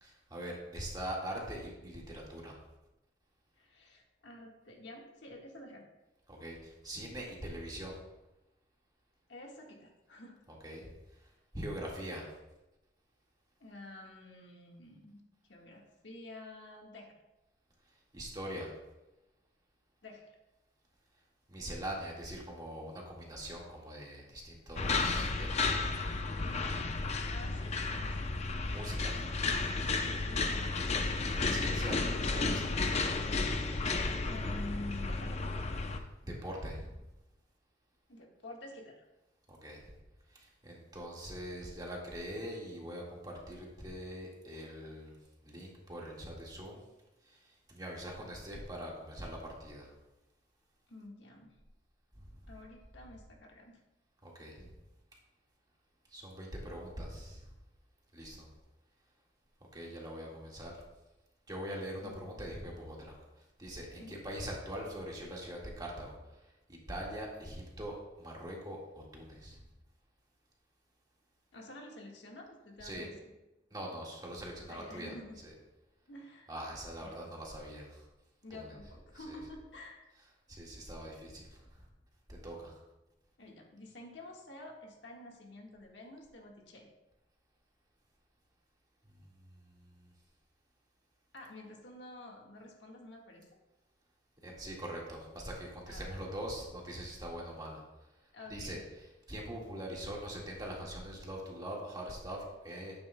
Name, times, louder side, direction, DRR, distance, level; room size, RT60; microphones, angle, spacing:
voice 1, 0.0-2.6 6.3-8.0 10.5-10.8 11.5-12.3 18.1-18.7 21.5-25.7 28.7-29.2 31.5-32.7 35.9-36.9 39.5-39.9 40.3-45.2 45.4-46.8 47.3-49.9 54.2-54.7 56.1-57.5 58.1-58.5 59.7-60.7 61.5-63.2 63.6-66.2 66.7-69.6 72.8-73.1 73.7-75.1 75.4-75.5 76.5-78.0 78.5-78.7 79.1-79.4 80.5-81.8 82.3-82.7 90.0-90.1 94.4-97.8 98.5-98.8 99.3-102.9, equal, 20° right, -2 dB, 1.8 m, -42 dB
voice 2, 3.6-5.9 9.3-10.4 13.6-15.2 15.5-17.1 20.0-20.4 27.3-28.2 30.3-30.7 34.2-35.4 38.1-39.0 50.9-51.5 52.5-53.8 62.0-62.1 64.0-64.2 71.5-73.2 74.7-75.4 76.1-76.5 77.0-77.4 78.4-80.0 83.4-86.9 91.3-93.5 95.9-96.2 98.3-98.8, left 1 dB, 70° left, 0 dB, 1.6 m, -49 dB
sound 1, 24.8-36.0, left 3 dB, 35° left, 0.6 m, -33 dB
11.0 x 8.7 x 2.2 m, 1.0 s
head